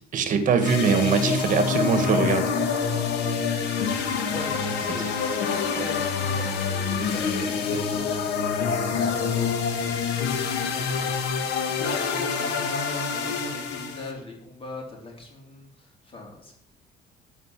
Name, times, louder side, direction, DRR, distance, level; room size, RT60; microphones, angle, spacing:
voice 1, 0.1-2.7 5.0-5.1, right 6 dB, 50° right, 8 dB, 1.8 m, -23 dB
sound 1, 0.6-14.1, left 5 dB, 85° left, 1.9 m, -26 dB
voice 2, 4.2-16.5, left 2 dB, 35° left, -1 dB, 4.2 m, -41 dB
12.0 x 5.7 x 8.3 m, 0.73 s
cardioid pair, 110°, 17 cm